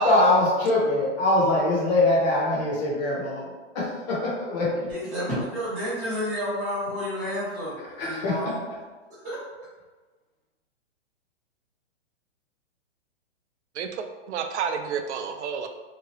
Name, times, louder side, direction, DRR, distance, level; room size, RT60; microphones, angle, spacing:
voice 1, 0.0-4.9 7.8-8.5, left 2 dB, 35° left, -5 dB, 1.0 m, -23 dB
voice 2, 4.9-8.6 9.2-9.4, equal, 10° right, -16 dB, 0.8 m, -30 dB
voice 3, 13.7-15.7, right 6 dB, 70° right, 6 dB, 0.5 m, -30 dB
2.9 x 2.3 x 3.1 m, 1.3 s
hypercardioid pair, 155°, 36 cm